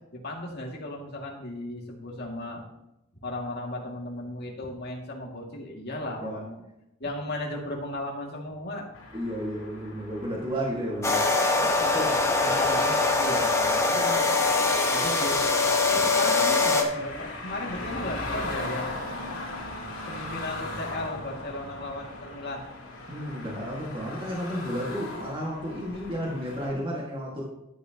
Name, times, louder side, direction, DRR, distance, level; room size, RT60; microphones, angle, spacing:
voice 1, 0.1-2.6 3.2-6.6 7.0-8.9 11.6-14.3 14.9-15.5 15.9-19.0 20.1-22.6, left 1 dB, 55° left, -1 dB, 2.4 m, -36 dB
sound 1, 8.9-26.7, left 2 dB, 90° left, 3.2 m, -39 dB
voice 2, 9.1-12.1 23.1-27.4, equal, 25° right, -3 dB, 1.9 m, -33 dB
sound 2, 11.0-16.8, left 3 dB, 15° left, 1.1 m, -23 dB
12.0 x 9.5 x 3.0 m, 0.88 s
head